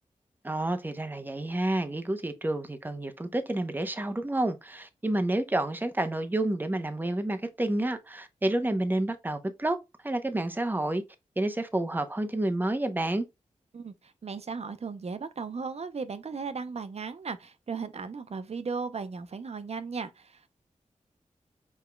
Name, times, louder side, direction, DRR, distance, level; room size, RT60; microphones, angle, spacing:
voice 1, 0.4-9.8 10.0-11.0 11.4-13.2, right 1 dB, 15° right, 0.7 m, -29 dB
voice 2, 13.7-20.5, right 5 dB, 55° right, 0.6 m, -36 dB
5.0 x 3.5 x 2.2 m
cardioid pair, 55°, 13 cm